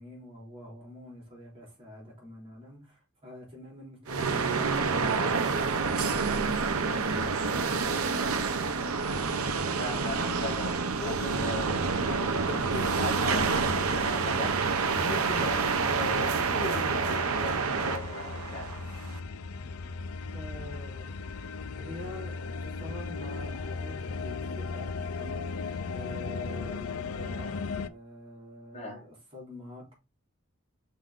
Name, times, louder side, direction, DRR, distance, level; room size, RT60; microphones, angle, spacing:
voice 1, 0.0-7.5 20.3-21.2 21.8-30.0, left 1 dB, 25° right, 3.5 m, -46 dB
sound 1, 4.1-19.2, right 4 dB, 90° right, 0.8 m, -28 dB
voice 2, 9.7-10.7 11.0-14.5 15.0-18.7 28.7-29.0, left 2 dB, 30° left, 2.2 m, -38 dB
sound 2, 11.7-27.9, left 4 dB, 90° left, 0.5 m, -38 dB
6.3 x 4.1 x 3.7 m
head